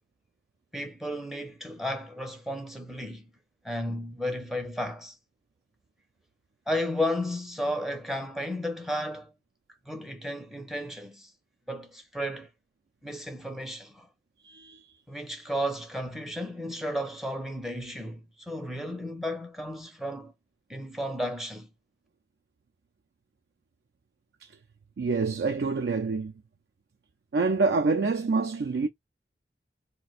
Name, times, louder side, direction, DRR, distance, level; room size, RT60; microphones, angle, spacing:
voice 1, 0.7-3.3 3.6-5.2 6.7-9.3 9.9-11.3 11.7-12.5 13.0-14.1 15.1-20.3 20.7-21.7, equal, ahead, 0.5 m, -33 dB
voice 2, 14.4-14.9 25.0-26.3 27.3-28.9, right 4 dB, 70° right, 0.4 m, -26 dB
2.4 x 2.1 x 3.9 m
head